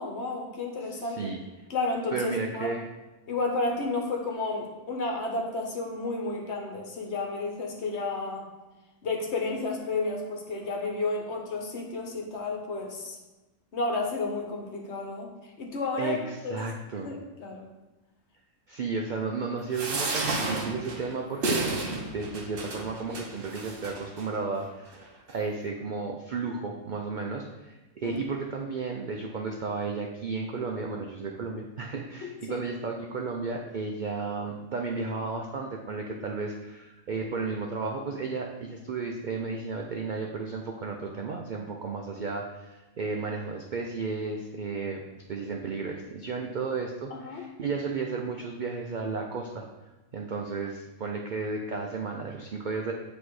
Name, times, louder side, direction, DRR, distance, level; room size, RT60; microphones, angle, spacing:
voice 1, 0.0-1.3 1.7-2.8 3.3-8.5 9.0-13.2 13.7-16.2 16.4-16.6 17.0-17.7 28.0-28.2 32.2-32.6 47.1-47.4, left 3 dB, 55° left, 1 dB, 1.1 m, -32 dB
voice 2, 0.9-1.4 2.1-2.8 16.0-17.1 18.7-45.0 45.3-49.6 50.1-52.9, right 4 dB, 70° right, 1 dB, 0.4 m, -33 dB
sound 1, 19.7-24.3 24.9-25.0 25.3-25.4, right 3 dB, 50° right, 0.8 m, -32 dB
8.1 x 3.0 x 4.7 m, 1.1 s
omnidirectional pair, 1.5 m